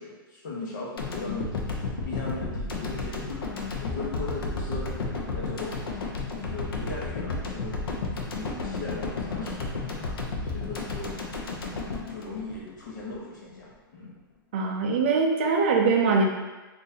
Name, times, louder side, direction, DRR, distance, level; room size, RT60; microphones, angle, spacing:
voice 1, 0.0-6.0 6.3-7.8 8.2-10.1 10.4-11.1 11.6-14.2, left 3 dB, 55° left, -4 dB, 1.0 m, -38 dB
sound 1, 1.0-13.2, left 3 dB, 90° left, 0.6 m, -32 dB
voice 2, 14.5-16.2, right 4 dB, 30° right, 1 dB, 0.4 m, -22 dB
3.8 x 2.5 x 2.7 m, 1.2 s
hypercardioid pair, 175°, 12 cm